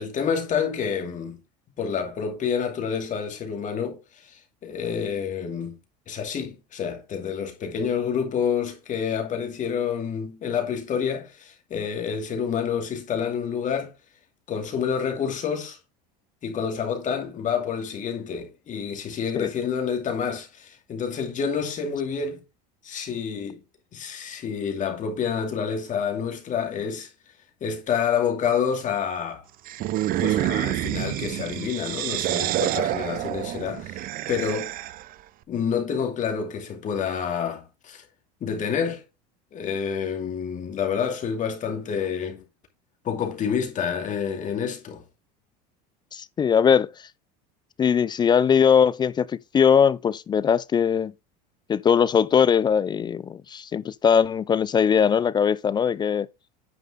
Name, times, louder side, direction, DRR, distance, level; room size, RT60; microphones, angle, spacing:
voice 1, 0.0-1.4 1.8-5.8 6.1-13.9 14.5-15.8 16.4-22.4 22.8-23.6 23.9-27.1 27.6-29.4 30.2-34.7 35.5-38.0 38.4-39.0 39.5-42.4 43.0-45.0, left 7 dB, 35° left, 2.4 m, -28 dB
sound 1, 29.7-35.1, right 14 dB, 45° right, 0.5 m, -28 dB
voice 2, 46.1-46.9 47.8-51.1 51.7-56.3, left 7 dB, 20° left, 0.3 m, -20 dB
9.3 x 5.4 x 3.6 m
supercardioid pair, 115°, 21 cm